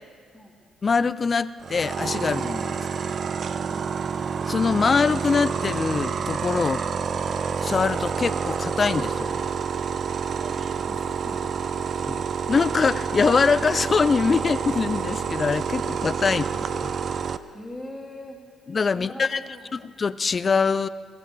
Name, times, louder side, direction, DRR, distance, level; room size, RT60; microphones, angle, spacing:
voice 1, 0.8-3.0 4.5-6.8 7.6-9.6 12.1-16.9 18.7-19.4 19.7-20.9, left 5 dB, 35° left, 16 dB, 0.4 m, -23 dB
sound 1, 1.6-17.4, right 6 dB, 50° right, 0.5 m, -28 dB
voice 2, 10.9-12.0 17.5-18.4 18.9-19.8, left 1 dB, ahead, -5 dB, 2.0 m, -42 dB
23.0 x 15.5 x 3.3 m, 2.1 s
cardioid pair, 90°, 0 cm